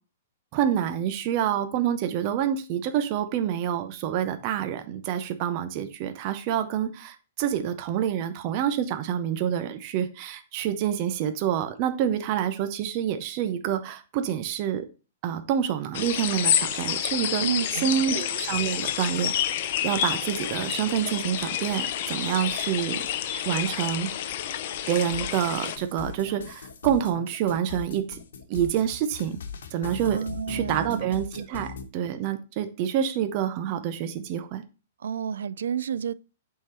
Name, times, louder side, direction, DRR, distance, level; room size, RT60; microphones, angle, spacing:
voice 1, 0.5-14.9 15.2-17.4 17.7-23.0 23.5-24.1 24.9-28.2 28.5-29.4 29.7-30.2 30.5-34.6, right 9 dB, 30° right, 0.5 m, -27 dB
sound 1, 15.9-25.8, left 11 dB, 40° left, 0.5 m, -29 dB
voice 2, 17.4-18.0 30.0-31.1 31.4-31.5 35.0-36.1, right 7 dB, 80° right, 0.3 m, -30 dB
sound 2, 25.1-31.9, left 5 dB, 85° left, 1.1 m, -39 dB
8.0 x 3.7 x 4.2 m
hypercardioid pair, 175°, 0 cm